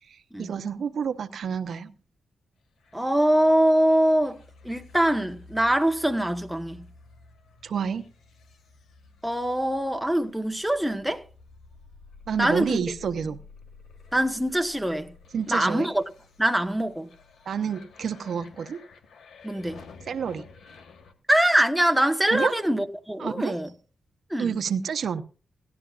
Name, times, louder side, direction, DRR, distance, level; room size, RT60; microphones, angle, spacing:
voice 1, 0.1-1.9 7.6-8.0 12.3-13.4 15.3-15.9 17.5-18.8 20.1-20.4 22.3-22.5 23.2-23.5 24.4-25.2, right 7 dB, 65° right, 0.8 m, -29 dB
sound 1, 2.8-21.1, left 4 dB, 90° left, 1.8 m, -51 dB
voice 2, 2.9-6.8 9.2-11.2 12.4-12.8 14.1-15.1 15.5-16.0 16.4-17.1 19.4-19.8 21.3-23.7 24.3-24.5, right 1 dB, 5° right, 1.2 m, -23 dB
17.5 x 12.0 x 2.5 m
cardioid pair, 100°, 0 cm